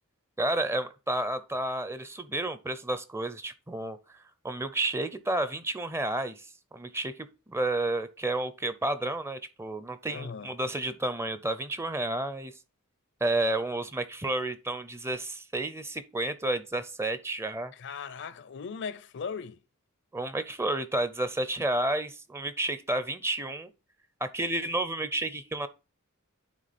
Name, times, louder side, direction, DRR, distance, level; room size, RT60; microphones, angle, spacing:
voice 1, 0.4-12.5 13.2-17.7 20.1-23.7 24.2-25.7, right 2 dB, 10° right, 0.5 m, -31 dB
voice 2, 10.1-10.5 17.7-19.6, left 6 dB, 55° left, 0.6 m, -38 dB
9.3 x 3.7 x 4.2 m
head